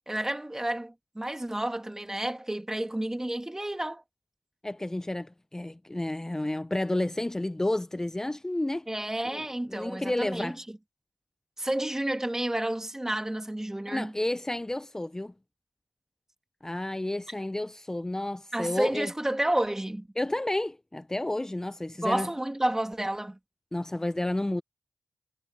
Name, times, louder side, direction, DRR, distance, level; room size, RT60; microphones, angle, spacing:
voice 1, 0.1-4.0 8.9-10.7 11.6-14.1 18.5-20.1 22.0-23.4, right 1 dB, 15° right, 2.7 m, -30 dB
voice 2, 4.6-8.9 9.3-9.4 9.7-10.6 13.9-15.3 16.6-19.1 20.2-22.3 23.7-24.6, left 1 dB, 15° left, 0.6 m, -31 dB
supercardioid pair, 40°, 3 cm